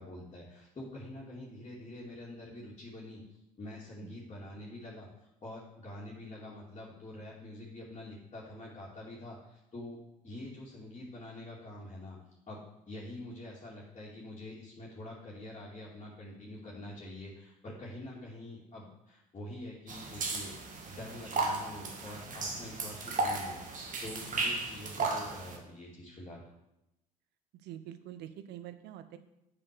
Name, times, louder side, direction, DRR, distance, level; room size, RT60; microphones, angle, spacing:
voice 1, 0.0-3.2 3.6-5.1 5.4-10.0 10.2-12.2 12.5-20.5 20.9-26.4, left 1 dB, 30° left, -6 dB, 2.7 m, -46 dB
sound 1, 19.9-25.6, right 3 dB, 45° right, 1.8 m, -35 dB
voice 2, 27.6-29.2, right 11 dB, 65° right, 11 dB, 0.8 m, -45 dB
7.6 x 5.0 x 6.1 m, 0.88 s
hypercardioid pair, 65°, 19 cm